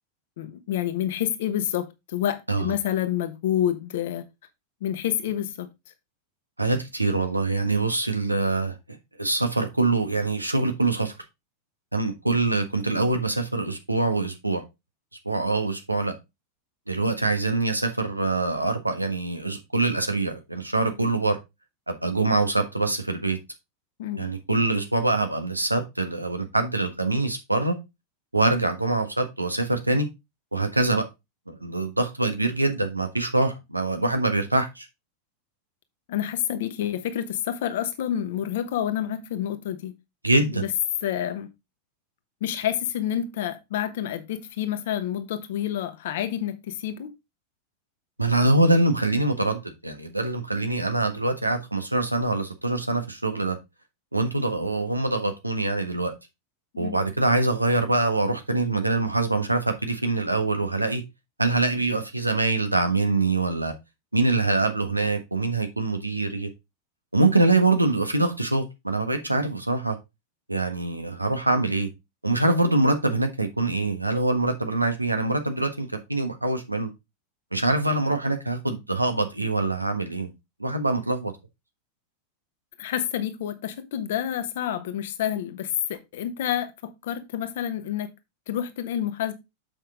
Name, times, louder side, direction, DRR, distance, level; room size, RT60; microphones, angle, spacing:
voice 1, 0.4-4.2 4.8-5.7 24.0-24.3 36.1-39.9 40.5-40.7 41.0-41.5 42.4-47.1 56.8-57.0 82.8-88.1 88.5-89.4, left 10 dB, 55° left, 1.2 m, -28 dB
voice 2, 6.6-8.7 9.2-11.1 11.9-14.6 15.2-16.1 16.9-21.4 21.9-23.4 24.2-27.7 28.3-30.1 30.5-31.0 31.5-34.9 40.2-40.6 48.2-53.6 54.1-56.1 56.8-61.0 61.4-63.7 64.1-66.5 67.1-70.0 70.5-71.9 72.2-76.9 77.5-80.3 80.6-81.3, right 2 dB, 85° right, 1.3 m, -24 dB
7.1 x 5.7 x 3.7 m
figure-of-eight pair, 90°, 0 cm